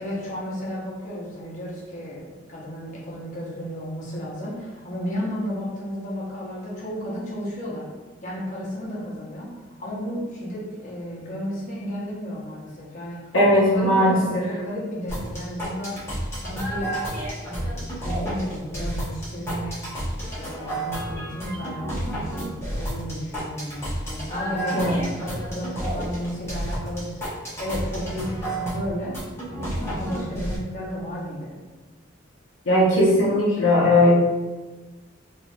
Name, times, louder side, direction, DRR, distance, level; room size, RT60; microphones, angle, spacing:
voice 1, 0.0-7.9 8.2-9.5 9.8-13.3 13.7-17.0 17.5-19.8 20.2-22.3 22.6-27.2 27.6-29.1 29.6-31.6, equal, 40° left, -6 dB, 0.8 m, -33 dB
voice 2, 13.3-14.2 24.7-25.0 32.7-34.1, left 1 dB, 75° left, -5 dB, 0.8 m, -18 dB
sound 1, 15.1-30.6, right 1 dB, 15° left, 0.9 m, -31 dB
3.9 x 2.6 x 2.3 m, 1.3 s
head